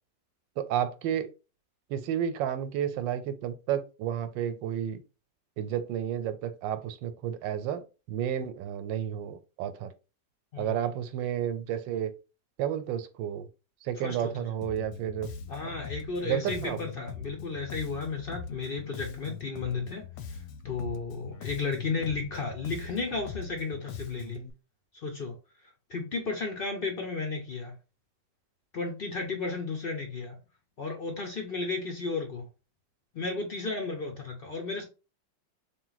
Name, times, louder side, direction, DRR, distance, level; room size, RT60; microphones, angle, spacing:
voice 1, 0.6-1.3 1.9-5.0 5.6-9.9 10.6-12.1 12.6-13.5 13.8-15.3 15.6-15.8 16.2-16.8, right 10 dB, 85° right, 1.3 m, -31 dB
Bass guitar, 14.6-24.5, left 6 dB, 90° left, 1.3 m, -42 dB
voice 2, 15.5-20.0 20.6-24.4 25.0-25.3 25.9-27.8 28.7-30.4 30.8-32.4 33.1-34.8, left 4 dB, 65° left, 0.5 m, -33 dB
3.7 x 2.5 x 3.9 m
omnidirectional pair, 2.0 m